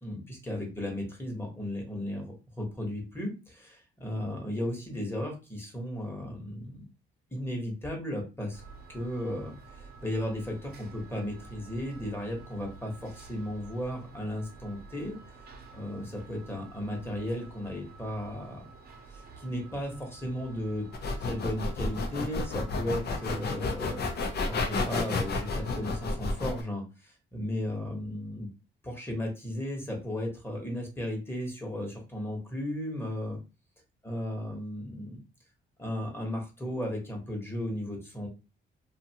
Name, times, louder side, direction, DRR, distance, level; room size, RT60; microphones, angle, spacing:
voice 1, 0.0-6.8 7.3-8.6 8.9-15.2 15.7-18.6 19.1-20.9 21.2-24.0 24.4-28.5 28.8-33.4 34.0-35.2 35.8-38.3, left 1 dB, 10° left, 1 dB, 1.1 m, -35 dB
sound 1, 8.5-26.1, right 3 dB, 55° right, 0.8 m, -50 dB
sound 2, 20.9-26.6, left 3 dB, 55° left, 0.6 m, -31 dB
2.6 x 2.4 x 2.8 m, 0.30 s
cardioid pair, 90°, 20 cm